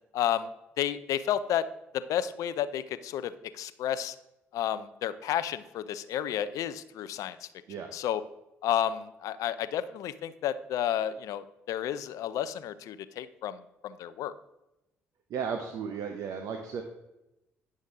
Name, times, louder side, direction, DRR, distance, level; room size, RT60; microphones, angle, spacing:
voice 1, 0.1-0.5 0.8-1.6 1.9-4.2 4.5-7.5 7.9-8.2 8.6-14.3, left 10 dB, 65° left, 14 dB, 0.5 m, -31 dB
voice 2, 15.3-16.8, right 6 dB, 60° right, 5 dB, 0.8 m, -34 dB
9.6 x 6.4 x 3.6 m, 0.92 s
hypercardioid pair, 50°, 6 cm